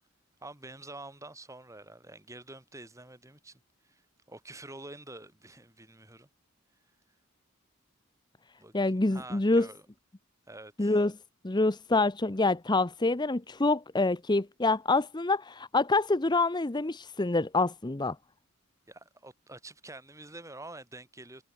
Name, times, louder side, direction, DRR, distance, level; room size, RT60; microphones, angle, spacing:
voice 1, 0.4-4.0 4.3-6.3 8.6-9.9 10.5-11.0 18.9-21.4, right 2 dB, 15° right, 5.0 m, -47 dB
voice 2, 8.7-9.7 10.8-11.1 11.4-18.2, left 2 dB, 20° left, 0.7 m, -26 dB
head